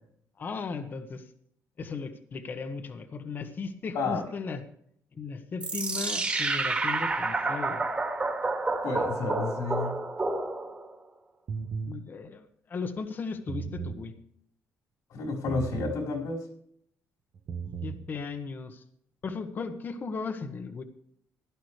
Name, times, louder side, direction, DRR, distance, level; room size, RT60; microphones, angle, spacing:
voice 1, 0.4-1.3 1.8-4.6 5.1-7.9 11.8-14.1 17.8-18.8 19.2-20.8, left 4 dB, 35° left, 8 dB, 1.2 m, -36 dB
sound 1, 5.6-10.9, right 3 dB, 20° right, 2.0 m, -29 dB
voice 2, 8.8-9.9 15.1-16.4, left 3 dB, 75° left, 0 dB, 4.3 m, -30 dB
sound 2, 11.5-12.0 13.3-14.0 15.5-16.0 17.3-18.0, right 5 dB, 45° right, 1.2 m, -35 dB
16.0 x 11.5 x 3.3 m, 0.66 s
cardioid pair, 140°, 6 cm